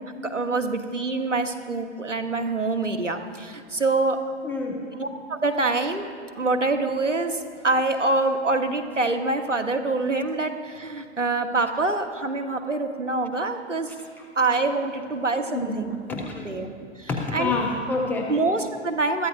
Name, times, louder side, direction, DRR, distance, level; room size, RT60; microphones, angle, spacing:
voice 1, 0.2-4.2 5.0-6.1 6.3-13.9 14.3-15.9 16.4-16.7 17.0-17.6 18.3-19.3, right 3 dB, 90° right, 6 dB, 1.2 m, -25 dB
voice 2, 4.4-4.8 13.9-14.2 15.5-16.4 17.1-18.3, left 3 dB, 5° left, 1 dB, 0.3 m, -28 dB
21.0 x 14.0 x 2.6 m, 2.3 s
figure-of-eight pair, 110°, 36 cm